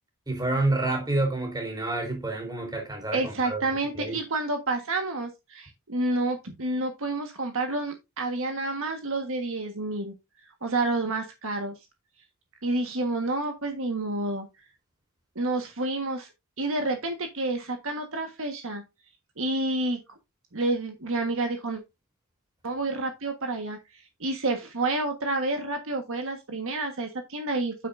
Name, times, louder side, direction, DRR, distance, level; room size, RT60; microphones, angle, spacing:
voice 1, 0.3-3.6 3.9-4.2, right 2 dB, 20° right, 3.7 m, -28 dB
voice 2, 3.1-10.1 10.6-11.7 12.6-14.5 15.3-16.3 16.6-18.8 19.4-20.0 20.5-21.8 22.6-27.7, right 2 dB, 65° right, 1.6 m, -29 dB
9.2 x 8.2 x 2.7 m
head